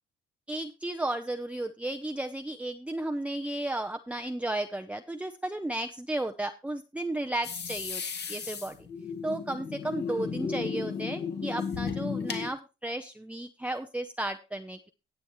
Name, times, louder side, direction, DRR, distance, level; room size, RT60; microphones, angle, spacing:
voice 1, 0.5-8.0 8.3-8.8 9.2-14.9, right 1 dB, 5° right, 5 dB, 0.6 m, -34 dB
sound 1, 7.4-12.5, left 6 dB, 60° left, 1.9 m, -34 dB
18.0 x 7.0 x 3.1 m, 0.30 s
cardioid pair, 90°, 20 cm